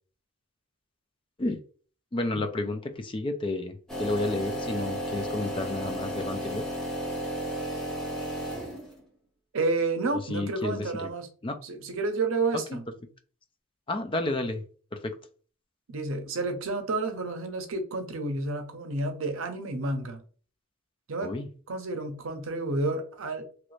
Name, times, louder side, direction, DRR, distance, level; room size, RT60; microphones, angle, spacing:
voice 1, 2.1-6.7 10.1-11.1 11.4-11.6 13.9-14.6 14.9-15.1 21.2-21.5, left 2 dB, 25° left, 0.4 m, -31 dB
sound 1, 3.9-9.0, equal, ahead, 1.2 m, -33 dB
voice 2, 9.5-11.3 11.6-12.8 15.9-20.2 21.1-21.3 21.7-23.4, right 3 dB, 80° right, 0.6 m, -30 dB
3.0 x 2.5 x 3.1 m
head